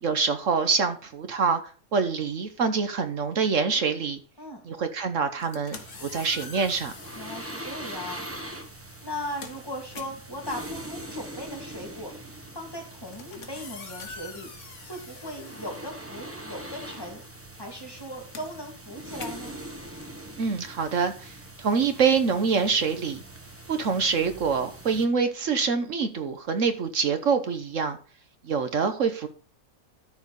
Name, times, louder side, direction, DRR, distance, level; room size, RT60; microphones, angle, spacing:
voice 1, 0.0-1.6 1.9-4.2 4.6-6.9 20.4-23.2 23.7-28.0 28.4-29.3, right 5 dB, 60° right, 8 dB, 1.3 m, -25 dB
sound 1, 5.3-7.6 8.5-8.7 9.0-16.6 16.8-21.5, left 4 dB, 55° left, 1.7 m, -46 dB
sound 2, 5.7-25.1, right 1 dB, 10° right, 0.9 m, -42 dB
voice 2, 7.1-8.3 9.0-12.2 12.5-14.5 14.9-17.2 17.6-19.6, left 1 dB, 15° left, 0 dB, 2.7 m, -38 dB
13.0 x 4.5 x 5.3 m, 0.38 s
omnidirectional pair, 1.6 m